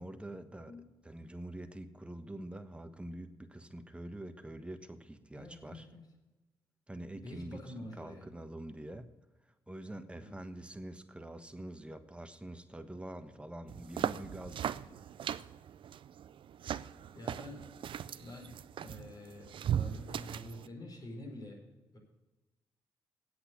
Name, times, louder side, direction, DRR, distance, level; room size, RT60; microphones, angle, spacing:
voice 1, 0.0-0.8 1.0-5.9 6.9-9.1 9.7-14.7, right 1 dB, 10° right, 9 dB, 1.3 m, -45 dB
voice 2, 5.3-6.0 7.2-8.3 10.2-10.4 14.4-14.8 17.1-17.7 18.2-21.7 21.9-22.0, left 1 dB, 45° left, 0 dB, 4.8 m, -48 dB
sound 1, 13.7-20.7, right 9 dB, 60° right, 0.4 m, -38 dB
8.5 x 8.0 x 8.6 m, 1.1 s
supercardioid pair, 50°, 10 cm